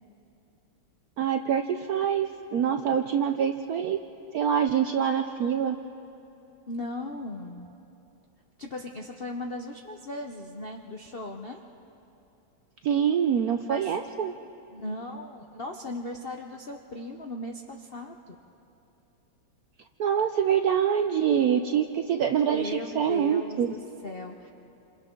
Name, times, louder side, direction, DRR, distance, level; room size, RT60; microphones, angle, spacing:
voice 1, 1.2-4.0 4.3-5.8 12.8-14.3 20.0-23.7, right 8 dB, 75° right, 6 dB, 0.8 m, -25 dB
voice 2, 6.7-7.7 8.6-11.6 13.7-13.9 14.7-18.4 22.5-24.5, left 2 dB, 60° left, 2 dB, 0.6 m, -37 dB
28.5 x 27.0 x 3.8 m, 2.8 s
omnidirectional pair, 2.2 m